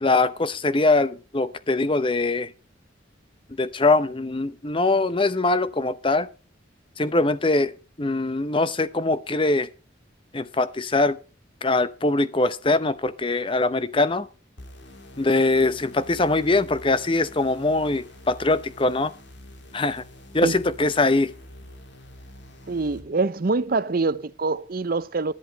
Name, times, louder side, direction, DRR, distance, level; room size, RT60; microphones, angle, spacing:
voice 1, 0.0-2.5 3.6-6.3 7.0-9.7 10.3-11.2 11.6-14.3 15.2-19.1 19.7-20.0 20.3-21.3, left 2 dB, 25° left, 0.7 m, -22 dB
sound 1, 14.6-23.0, left 1 dB, 65° left, 2.5 m, -46 dB
voice 2, 22.7-25.3, right 3 dB, 50° right, 0.6 m, -25 dB
11.0 x 10.0 x 5.1 m
head